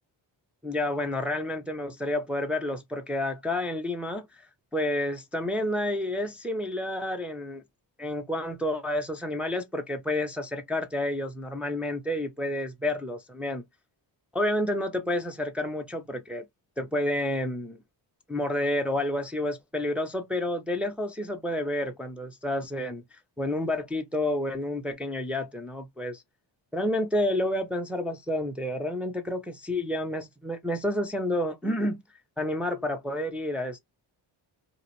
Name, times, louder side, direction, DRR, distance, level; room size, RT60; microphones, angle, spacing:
voice 1, 0.6-4.5 4.7-7.6 8.0-13.6 14.3-16.4 16.8-17.8 18.3-23.0 23.4-26.2 26.7-32.0 32.4-33.8, left 1 dB, 5° right, 0.4 m, -30 dB
2.4 x 2.1 x 2.9 m
cardioid pair, 80°, 46 cm